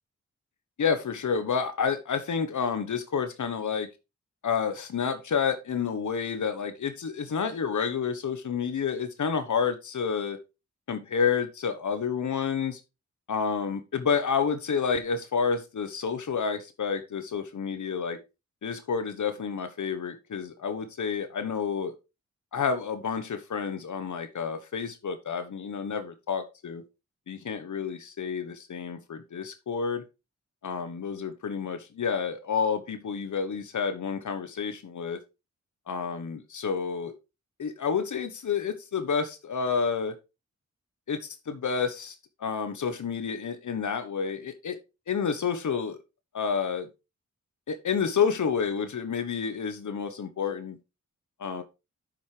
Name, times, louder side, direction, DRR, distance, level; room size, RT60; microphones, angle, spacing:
voice 1, 0.8-3.9 4.4-10.4 10.9-12.8 13.3-18.2 18.6-21.9 22.5-26.8 27.3-30.0 30.6-35.2 35.9-37.1 37.6-40.1 41.1-42.1 42.4-44.8 45.1-46.0 46.3-46.9 47.7-50.8 51.4-51.6, left 6 dB, 85° left, 1.3 m, -29 dB
9.4 x 7.1 x 3.5 m
wide cardioid pair, 80°, 29 cm